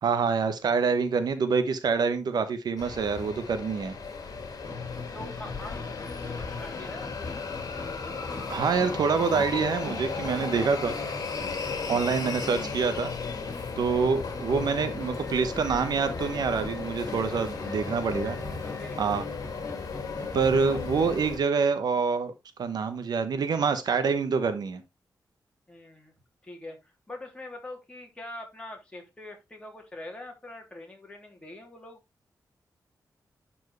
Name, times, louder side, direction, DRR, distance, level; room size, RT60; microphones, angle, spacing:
voice 1, 0.0-3.9 8.5-10.9 11.9-13.1 13.8-18.4 19.0-19.2 20.3-22.3 22.6-24.8, right 5 dB, 70° right, 1.1 m, -26 dB
sound 1, 2.8-21.4, left 5 dB, 60° left, 2.2 m, -36 dB
Musical instrument, 4.6-21.3, left 3 dB, 30° left, 2.6 m, -40 dB
voice 2, 5.1-7.5 13.8-14.0 17.3-17.6 18.8-19.3 25.7-26.1 26.4-32.0, left 1 dB, 15° left, 2.8 m, -44 dB
11.0 x 4.6 x 3.1 m
wide cardioid pair, 120°, 7 cm